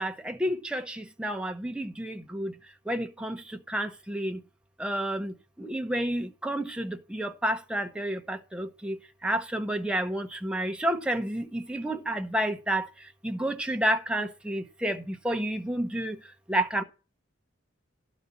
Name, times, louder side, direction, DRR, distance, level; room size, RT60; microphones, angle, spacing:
voice 1, 0.0-2.5 2.9-3.4 3.7-4.4 4.8-9.0 9.2-12.9 13.2-16.2 16.5-16.8, right 1 dB, 5° right, 0.8 m, -30 dB
11.5 x 4.0 x 6.9 m
head